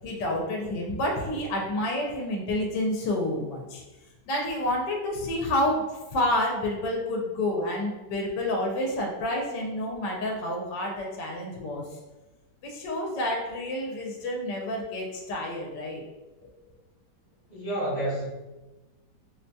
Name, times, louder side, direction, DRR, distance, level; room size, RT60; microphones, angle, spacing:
voice 1, 0.0-3.8 4.3-11.8 12.6-16.0, left 1 dB, 80° left, 0 dB, 1.3 m, -29 dB
voice 2, 17.5-18.3, right 1 dB, 35° left, -7 dB, 0.8 m, -29 dB
4.7 x 2.6 x 2.2 m, 1.1 s
omnidirectional pair, 1.9 m